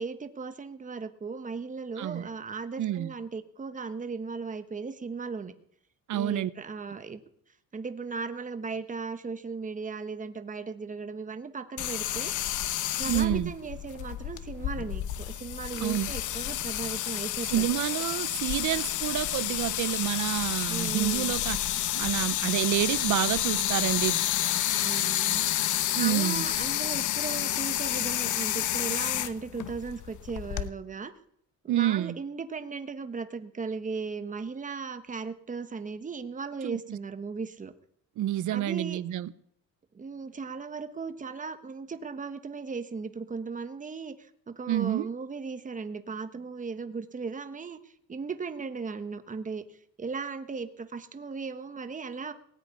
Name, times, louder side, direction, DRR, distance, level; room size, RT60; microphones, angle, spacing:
voice 1, 0.0-5.5 6.1-7.2 7.7-12.3 13.0-17.7 20.7-21.3 24.7-25.4 26.0-31.1 31.6-37.7 38.5-39.0 39.9-52.3, right 4 dB, 25° right, 1.2 m, -37 dB
voice 2, 2.0-2.3 2.8-3.1 6.1-6.5 13.1-13.5 15.8-16.1 17.5-21.6 21.9-24.2 25.9-26.5 31.7-32.2 36.6-37.0 38.2-39.3 44.7-45.1, right 13 dB, 70° right, 0.7 m, -28 dB
sound 1, 11.8-30.7, left 12 dB, 70° left, 1.0 m, -30 dB
18.5 x 6.3 x 9.6 m
cardioid pair, 120°, 31 cm